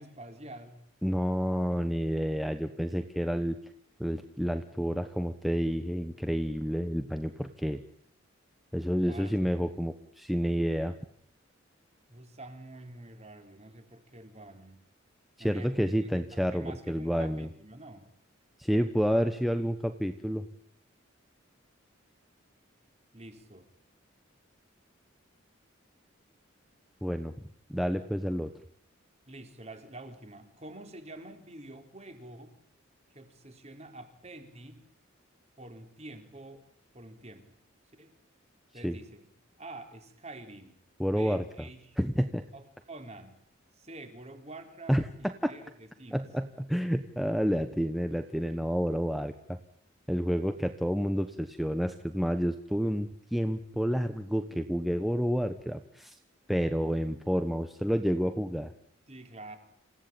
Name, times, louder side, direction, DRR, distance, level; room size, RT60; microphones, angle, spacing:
voice 1, 0.0-0.8 9.1-9.5 12.1-14.8 15.4-18.1 23.1-23.7 29.3-32.5 33.1-34.8 35.6-36.7 36.9-37.6 38.0-38.1 38.7-39.3 39.6-42.0 42.5-43.4 43.7-46.3 59.1-59.6, right 2 dB, 35° right, 6 dB, 4.0 m, -47 dB
voice 2, 1.0-3.6 4.0-7.8 8.7-11.0 15.4-17.5 18.6-20.5 27.0-27.3 27.7-28.5 38.8-39.0 41.0-41.7 42.0-42.4 44.9-45.1 45.4-45.5 46.1-49.6 50.1-56.2 56.5-58.7, equal, ahead, 7 dB, 1.1 m, -29 dB
28.0 x 17.0 x 9.0 m, 0.68 s
head